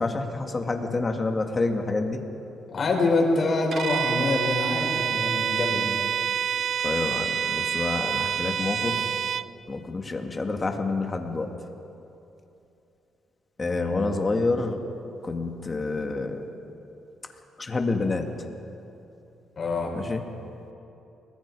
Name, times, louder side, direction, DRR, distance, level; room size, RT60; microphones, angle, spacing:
voice 1, 0.0-2.2 6.8-9.1 9.7-11.5 13.6-14.8 15.2-16.4 17.6-18.3 19.9-20.2, left 3 dB, 30° left, 3 dB, 2.4 m, -28 dB
voice 2, 2.7-6.0 13.6-14.0 19.6-19.9, left 3 dB, 45° left, 0 dB, 5.7 m, -25 dB
Bowed string instrument, 3.7-9.5, right 8 dB, 60° right, 0.5 m, -27 dB
29.5 x 20.5 x 5.0 m, 2.8 s
cardioid pair, 90°, 0 cm